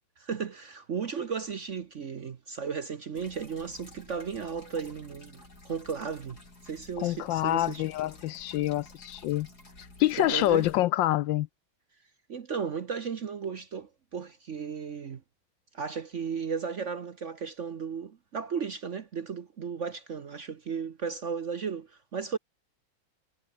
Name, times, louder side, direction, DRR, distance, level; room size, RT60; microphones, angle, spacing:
voice 1, 0.2-7.9 10.2-10.7 12.3-15.2 15.7-22.4, right 6 dB, 50° right, 1.0 m, -35 dB
sound 1, 3.1-10.8, left 2 dB, 50° left, 7.8 m, -52 dB
voice 2, 7.0-9.5 10.0-11.5, left 15 dB, 75° left, 1.2 m, -26 dB
omnidirectional pair, 2.2 m